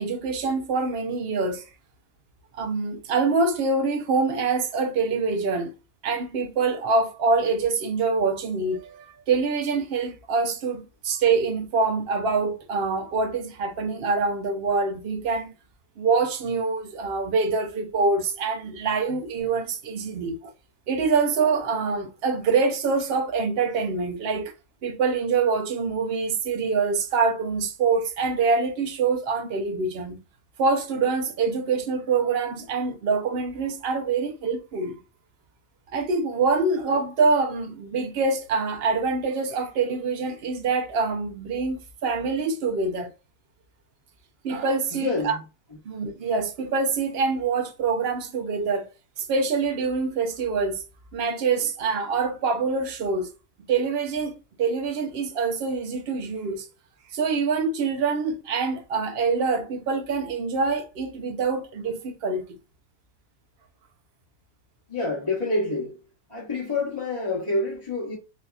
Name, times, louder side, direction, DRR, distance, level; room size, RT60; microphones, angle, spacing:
voice 1, 0.0-1.7 2.6-5.7 6.0-15.5 16.0-20.5 20.9-24.5 24.8-30.2 30.6-35.0 35.9-43.1 44.4-45.4 45.8-48.9 49.2-50.8 51.1-53.3 53.7-56.7 57.1-62.4, right 4 dB, 55° right, 0.8 m, -25 dB
voice 2, 44.9-45.4 64.9-66.0 66.3-68.2, left 2 dB, 25° left, 1.0 m, -27 dB
4.1 x 2.7 x 2.3 m
omnidirectional pair, 1.4 m